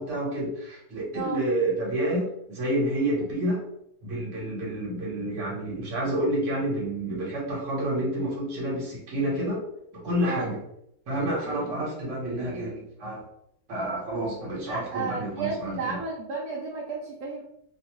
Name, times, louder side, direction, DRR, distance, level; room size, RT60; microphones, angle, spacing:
voice 1, 0.0-3.6 4.0-9.6 9.9-10.6 11.1-13.2 13.7-16.0, right 1 dB, 55° right, -4 dB, 1.3 m, -29 dB
voice 2, 1.1-1.4 10.2-10.6 11.4-11.8 14.7-17.4, right 4 dB, 75° right, -3 dB, 1.0 m, -33 dB
2.9 x 2.0 x 2.9 m, 0.76 s
omnidirectional pair, 1.7 m